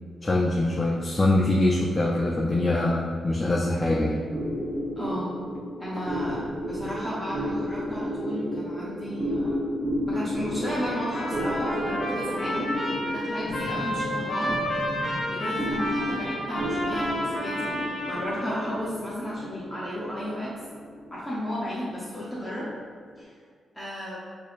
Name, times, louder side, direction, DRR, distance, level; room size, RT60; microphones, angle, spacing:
voice 1, 0.2-4.2, left 2 dB, 25° left, -3 dB, 0.4 m, -23 dB
sound 1, 4.3-23.1, equal, 35° right, 0.8 m, -32 dB
voice 2, 5.0-5.4 5.8-9.6 10.1-12.7 13.1-14.6 15.3-20.5 21.1-22.7 23.2-23.3 23.7-24.2, equal, 5° left, -9 dB, 0.7 m, -33 dB
Trumpet, 10.6-18.6, equal, 45° left, 1.0 m, -31 dB
4.6 x 2.5 x 2.5 m, 2.1 s
cardioid pair, 85°, 0 cm